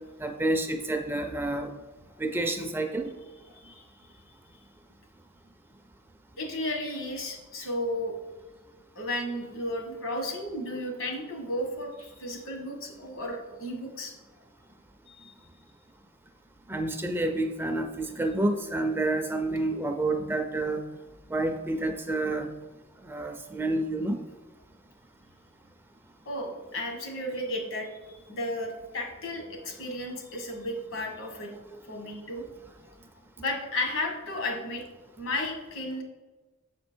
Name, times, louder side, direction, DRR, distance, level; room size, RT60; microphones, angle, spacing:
voice 1, 0.2-1.7 2.2-3.1 16.7-20.8 21.3-22.6 23.0-24.2, right 2 dB, 10° right, 5 dB, 0.4 m, -29 dB
voice 2, 3.5-4.2 6.4-8.2 8.9-14.1 15.1-15.3 26.2-31.5 31.9-32.4 33.4-34.8 35.2-36.0, left 1 dB, 70° left, 2 dB, 1.4 m, -34 dB
6.5 x 4.4 x 4.3 m, 1.2 s
head